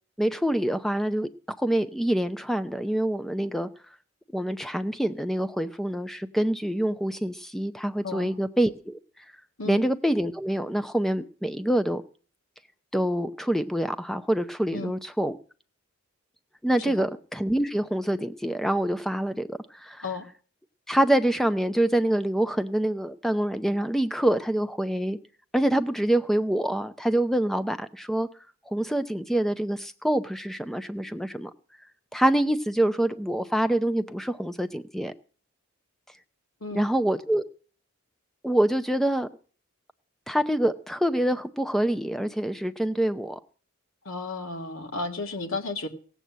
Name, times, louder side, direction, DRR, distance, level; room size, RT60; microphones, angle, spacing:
voice 1, 0.2-3.7 4.3-9.0 9.6-12.0 12.9-15.4 16.6-20.0 20.9-25.2 25.5-28.3 28.7-31.5 32.1-35.1 36.7-37.4 38.4-39.3 40.3-43.4, right 1 dB, ahead, 0.6 m, -26 dB
voice 2, 44.1-45.9, left 3 dB, 70° left, 2.1 m, -33 dB
17.0 x 8.1 x 7.4 m
head